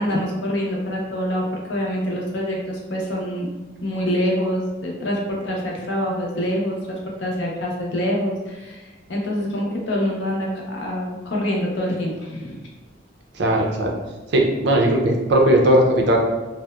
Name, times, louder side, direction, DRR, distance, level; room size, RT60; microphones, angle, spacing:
voice 1, 0.0-3.5 3.8-12.7, equal, 65° left, -2 dB, 0.6 m, -25 dB
voice 2, 13.3-13.9 14.3-16.2, right 1 dB, 60° right, 1 dB, 0.4 m, -17 dB
2.7 x 2.0 x 2.2 m, 1.2 s
head